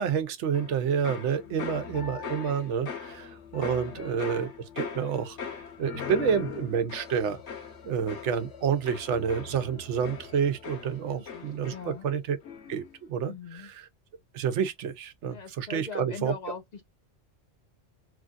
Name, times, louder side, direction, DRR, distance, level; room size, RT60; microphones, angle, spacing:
voice 1, 0.0-4.5 4.8-7.4 7.8-12.4 12.7-13.3 14.3-16.3, right 7 dB, 90° right, 1.0 m, -29 dB
sound 1, 0.5-12.1 12.4-12.9, left 7 dB, 80° left, 1.3 m, -40 dB
voice 2, 1.4-2.0 3.8-4.3 11.0-11.4 11.7-12.1 13.3-13.7 15.3-16.8, left 6 dB, 55° left, 0.5 m, -42 dB
3.1 x 2.5 x 2.3 m
omnidirectional pair, 1.2 m